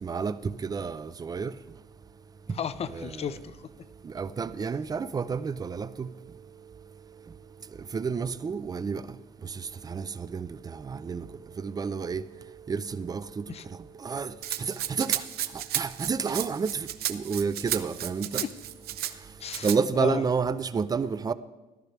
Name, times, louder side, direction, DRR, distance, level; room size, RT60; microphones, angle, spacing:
voice 1, 0.0-1.5 2.9-3.1 4.1-6.1 7.9-9.0 9.9-10.1 10.3-10.5 10.9-11.3 11.6-12.2 12.7-13.4 14.0-14.3 14.6-15.2 15.8-18.4 19.6-21.3, right 5 dB, 20° right, 0.4 m, -30 dB
voice 2, 2.5-3.9 13.4-13.6 18.4-18.5 19.4-20.2, left 7 dB, 40° left, 0.5 m, -34 dB
Rattle (instrument), 14.4-19.1 19.5-19.8, right 12 dB, 65° right, 0.6 m, -33 dB
14.5 x 12.0 x 3.4 m
cardioid pair, 110°, 17 cm